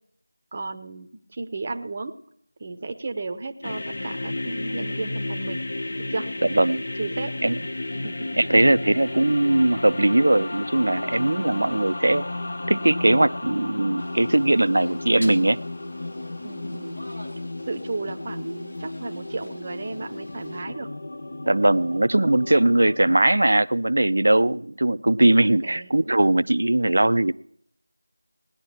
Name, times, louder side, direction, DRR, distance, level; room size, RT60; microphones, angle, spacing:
voice 1, 0.5-2.2 2.6-5.6 6.0-6.3 7.0-7.4 8.0-8.6 11.5-11.8 16.4-17.0 17.7-20.9 25.6-25.9, right 3 dB, 30° right, 7 dB, 0.8 m, -34 dB
sound 1, 3.6-23.2, left 2 dB, 45° left, 0.8 m, -33 dB
voice 2, 6.5-6.8 7.4-7.6 8.4-12.2 12.7-15.6 21.5-27.3, right 1 dB, 60° right, 14 dB, 0.6 m, -20 dB
sound 2, 14.0-20.6, left 1 dB, 65° left, 3.2 m, -47 dB
18.5 x 10.5 x 4.4 m, 0.69 s
figure-of-eight pair, 170°, 0 cm